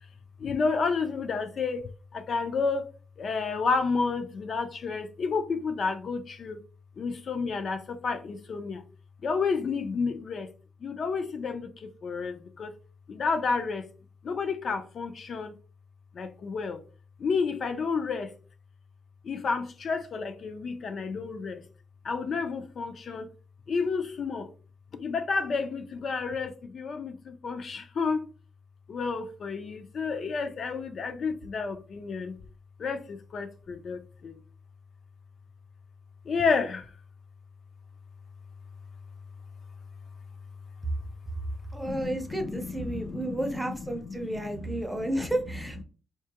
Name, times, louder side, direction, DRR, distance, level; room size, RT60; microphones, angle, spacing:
voice 1, 0.4-2.9 3.2-6.6 7.0-8.8 9.2-10.5 10.8-12.7 13.1-13.9 14.2-15.5 16.1-16.8 17.2-18.3 19.2-21.6 22.0-23.3 23.7-24.5 24.9-28.3 28.9-32.4 32.8-34.3 36.3-36.9 41.8-43.7 44.0-45.3, left 4 dB, 50° left, 0.3 m, -31 dB
voice 2, 41.7-45.8, right 1 dB, 5° right, 0.5 m, -32 dB
4.6 x 2.3 x 2.8 m
cardioid pair, 145°, 0 cm